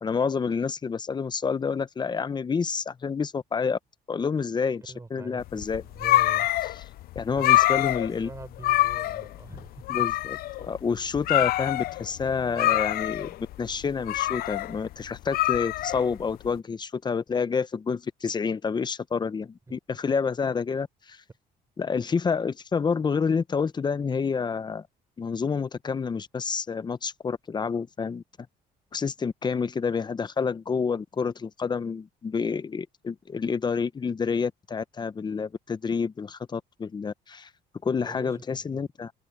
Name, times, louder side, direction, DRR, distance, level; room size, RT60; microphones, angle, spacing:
voice 1, 0.0-3.8 4.1-4.8 5.1-5.8 7.2-8.3 9.9-21.2 21.8-24.9 25.2-28.2 28.9-37.5 37.8-39.1, left 5 dB, 25° left, 0.8 m, -28 dB
voice 2, 4.9-6.5 7.3-9.9 19.7-19.8 20.1-20.2 38.0-38.9, right 3 dB, 20° right, 6.3 m, -45 dB
sound 1, 5.5-16.5, left 16 dB, 60° left, 0.4 m, -26 dB
cardioid pair, 110°, 17 cm